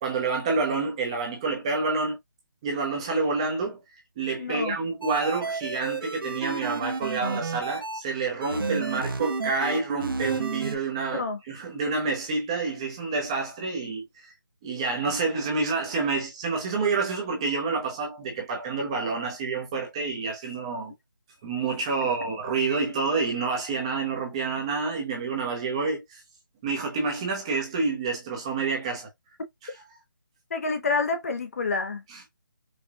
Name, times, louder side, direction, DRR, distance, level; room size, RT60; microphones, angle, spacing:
voice 1, 0.0-2.2 2.6-3.8 4.2-14.3 14.6-20.9 21.4-26.2 26.6-29.1 32.1-32.3, right 4 dB, 15° right, 0.9 m, -28 dB
voice 2, 4.4-4.8 11.1-11.4 30.5-32.0, left 4 dB, 45° left, 0.9 m, -28 dB
sound 1, 5.0-8.0 8.4-10.8, right 4 dB, 90° right, 0.9 m, -31 dB
4.9 x 2.5 x 2.4 m
hypercardioid pair, 170°, 11 cm